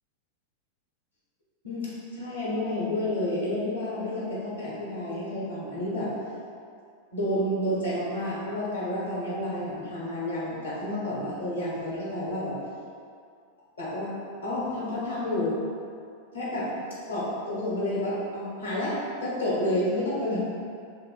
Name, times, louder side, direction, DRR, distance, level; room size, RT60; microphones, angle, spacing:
voice 1, 1.6-6.1 7.1-12.6 13.8-14.1 14.4-15.6 16.3-16.6 17.1-20.4, left 1 dB, 75° left, -7 dB, 1.0 m, -30 dB
4.4 x 2.2 x 2.5 m, 2.4 s
figure-of-eight pair, 90°, 0 cm